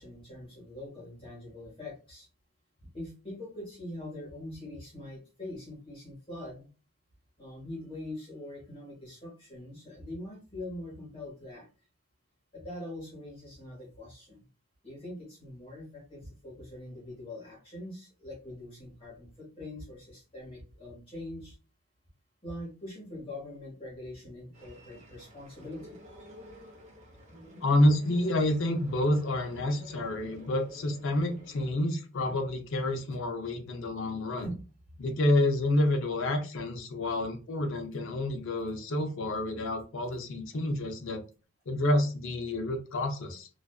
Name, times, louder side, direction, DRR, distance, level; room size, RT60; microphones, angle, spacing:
voice 1, 0.0-2.3 2.9-6.7 7.4-11.7 12.5-14.4 14.8-21.5 22.4-26.0 32.3-32.4 34.4-34.6, left 1 dB, 25° left, -4 dB, 1.1 m, -43 dB
sound 1, 24.5-31.7, equal, 35° right, 0.7 m, -51 dB
voice 2, 27.6-34.5 35.0-41.2 41.7-43.5, left 1 dB, 60° left, 5 dB, 0.5 m, -28 dB
2.4 x 2.3 x 2.2 m, 0.35 s
head